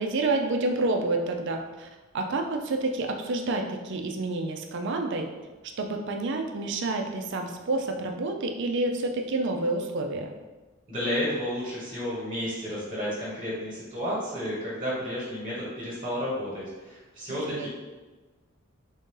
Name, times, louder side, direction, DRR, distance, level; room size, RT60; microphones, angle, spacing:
voice 1, 0.0-5.3 5.8-10.3 17.5-17.7, right 2 dB, 55° right, 4 dB, 0.4 m, -28 dB
voice 2, 10.9-17.7, equal, 35° right, -8 dB, 1.3 m, -32 dB
3.6 x 2.7 x 3.7 m, 1.3 s
head